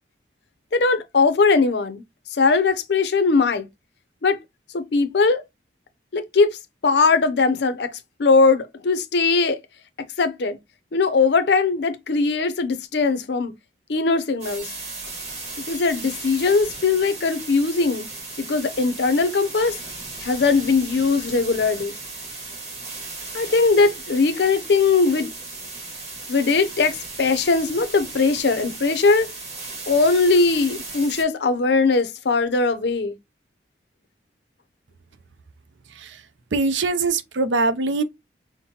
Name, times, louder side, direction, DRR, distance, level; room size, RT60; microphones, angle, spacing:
voice 1, 0.7-2.0 2.3-3.7 4.2-4.4 4.7-5.4 6.1-9.6 10.2-10.6 10.9-13.5 13.9-14.7 15.7-18.1 18.4-19.8 20.2-21.9 23.3-25.3 26.3-29.3 29.9-33.1, left 4 dB, 70° left, 0.6 m, -20 dB
sound 1, 14.4-31.2, right 3 dB, 35° right, 1.4 m, -36 dB
voice 2, 36.5-38.0, right 3 dB, 90° right, 0.5 m, -22 dB
5.8 x 2.1 x 2.8 m
head